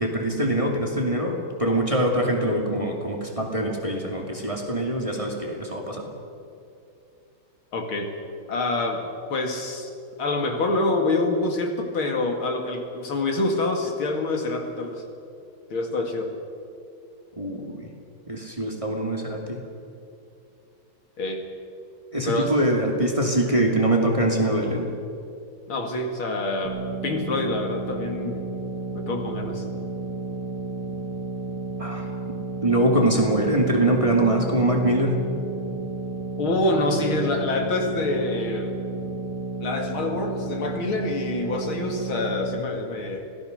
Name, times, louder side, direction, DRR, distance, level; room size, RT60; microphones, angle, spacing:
voice 1, 0.0-6.1 17.4-17.9 18.3-19.6 22.1-24.9 31.8-32.1 32.6-35.2, right 1 dB, 15° right, 0 dB, 2.4 m, -23 dB
voice 2, 7.7-8.1 8.5-9.9 10.2-15.0 15.7-16.3 21.2-21.4 22.3-22.6 25.7-28.4 28.9-29.6 36.4-38.7 39.6-43.3, left 2 dB, 70° left, 3 dB, 3.1 m, -26 dB
sound 1, 26.6-42.6, right 3 dB, 80° right, 3.1 m, -32 dB
25.5 x 17.5 x 6.6 m, 2.5 s
omnidirectional pair, 2.3 m